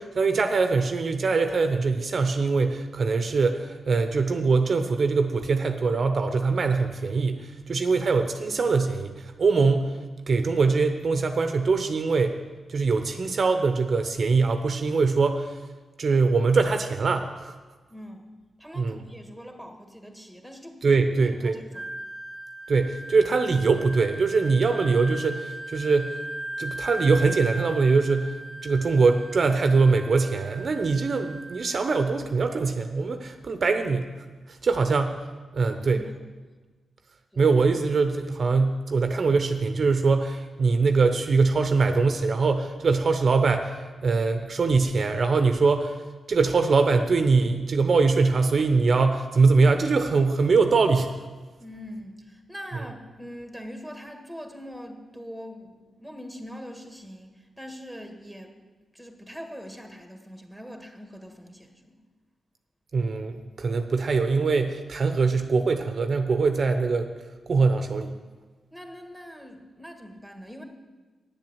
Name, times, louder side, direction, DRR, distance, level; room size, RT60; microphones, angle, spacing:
voice 1, 0.0-9.9 10.3-12.4 12.7-15.5 16.0-17.5 18.8-19.0 20.8-21.6 22.7-26.2 26.6-34.1 34.5-35.2 35.5-36.0 37.4-46.0 46.3-51.1 62.9-67.1 67.5-68.1, right 4 dB, 55° right, 7 dB, 0.8 m, -23 dB
voice 2, 17.9-18.3 18.6-21.0 21.4-21.9 34.8-35.0 35.6-36.2 37.3-37.4 51.6-58.6 58.9-62.0 68.7-70.6, equal, 5° left, 4 dB, 1.9 m, -42 dB
Wind instrument woodwind instrument, 21.7-32.1, right 1 dB, 20° right, 0.8 m, -38 dB
9.7 x 7.6 x 8.0 m, 1.3 s
cardioid pair, 70°, 0 cm